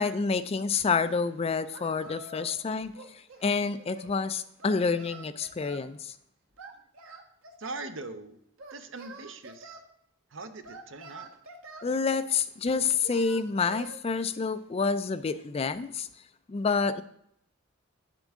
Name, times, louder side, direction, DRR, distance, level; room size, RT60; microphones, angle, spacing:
voice 1, 0.0-2.9 3.4-6.1 11.8-16.1 16.5-17.0, left 5 dB, 30° left, 12 dB, 0.4 m, -28 dB
Singing, 1.7-2.6 2.9-4.1 4.6-5.9 6.6-7.9 8.6-9.8 10.6-11.9 12.7-14.0, right 3 dB, 85° right, 1.3 m, -47 dB
voice 2, 7.6-8.4 8.7-9.8 10.3-11.3, right 3 dB, 65° right, 9 dB, 0.7 m, -41 dB
9.1 x 7.5 x 3.6 m, 0.71 s
head